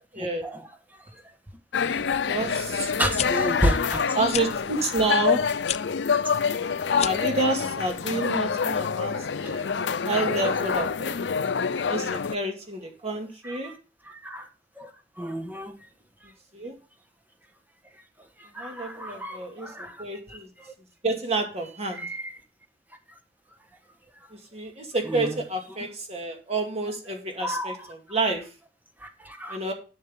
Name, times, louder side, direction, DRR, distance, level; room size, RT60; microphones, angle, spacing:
voice 1, 0.2-0.6 1.8-2.2 2.9-4.0 9.1-9.5 13.4-13.7 14.1-14.4 14.8-14.9 15.2-15.7 18.4-20.0 22.0-22.3 25.1-25.3 27.4-27.8 29.0-29.6, equal, 10° right, 1.4 m, -31 dB
sound 1, 1.7-12.3, left 6 dB, 85° left, 0.5 m, -26 dB
voice 2, 2.3-2.9 4.1-5.5 6.9-9.1 9.4-9.7 10.0-11.1 11.9-13.7 16.5-16.7 18.6-20.5 21.0-22.0 24.3-28.4 29.5-29.7, right 2 dB, 35° right, 2.3 m, -29 dB
sound 2, 3.1-3.3 4.3-4.5 5.6-5.8 6.9-7.3, left 11 dB, 40° left, 0.3 m, -30 dB
11.0 x 6.5 x 3.6 m
head